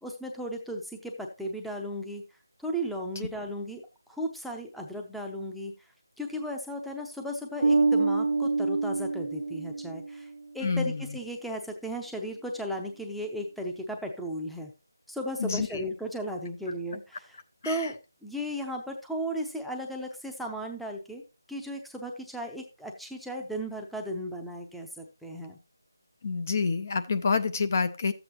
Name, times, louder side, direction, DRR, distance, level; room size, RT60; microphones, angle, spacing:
voice 1, 0.0-2.2 2.6-3.8 4.1-5.7 6.2-10.3 10.5-14.7 15.1-17.4 17.6-18.0 18.2-21.2 21.5-25.6, equal, ahead, 1 dB, 0.6 m, -35 dB
Bass guitar, 7.6-10.3, right 3 dB, 65° right, 0.6 m, -26 dB
voice 2, 10.6-11.0 15.4-15.7 17.6-17.9 26.2-28.1, left 4 dB, 40° left, 11 dB, 0.5 m, -27 dB
12.5 x 7.9 x 2.9 m, 0.30 s
figure-of-eight pair, 165°, 2 cm